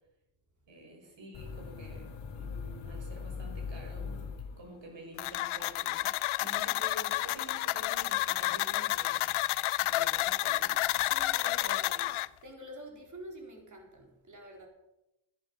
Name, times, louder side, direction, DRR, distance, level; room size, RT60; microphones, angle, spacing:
voice 1, 0.7-9.3 9.8-10.8 11.4-12.2, right 1 dB, 65° right, 1 dB, 5.9 m, -49 dB
sound 1, 1.3-5.1, left 5 dB, 65° left, 1.6 m, -41 dB
sound 2, 5.2-12.3, left 17 dB, 85° left, 0.5 m, -30 dB
voice 2, 6.4-6.8 11.0-11.9 12.4-14.7, equal, 35° right, 1 dB, 4.2 m, -48 dB
13.5 x 11.0 x 5.5 m, 0.88 s
cardioid pair, 90°, 48 cm